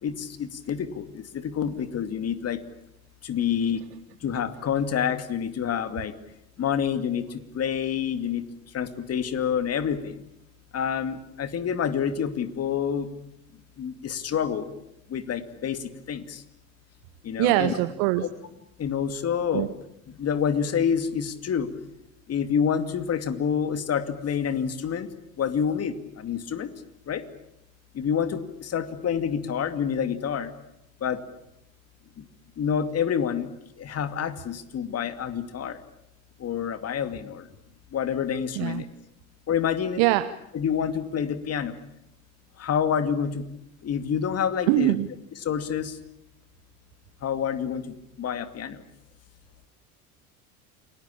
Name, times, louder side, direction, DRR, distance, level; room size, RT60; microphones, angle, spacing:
voice 1, 0.0-2.6 3.2-3.8 4.2-6.2 6.6-8.5 8.7-10.1 10.7-13.1 13.8-14.7 15.1-16.4 17.2-17.7 18.2-18.3 18.8-19.7 20.1-21.7 22.3-25.1 25.4-26.7 27.1-27.2 27.9-30.5 31.0-31.2 32.2-32.3 32.6-33.5 33.8-35.8 36.4-37.5 37.9-38.9 39.5-40.0 40.5-41.8 42.6-43.4 43.8-45.0 45.4-46.0 47.2-48.8, left 7 dB, 35° left, 11 dB, 2.5 m, -28 dB
voice 2, 17.4-18.3 19.5-19.7 38.6-38.8 40.0-40.3 44.7-45.1, right 18 dB, 55° right, 13 dB, 1.1 m, -22 dB
29.0 x 21.0 x 8.7 m, 0.81 s
figure-of-eight pair, 70°, 41 cm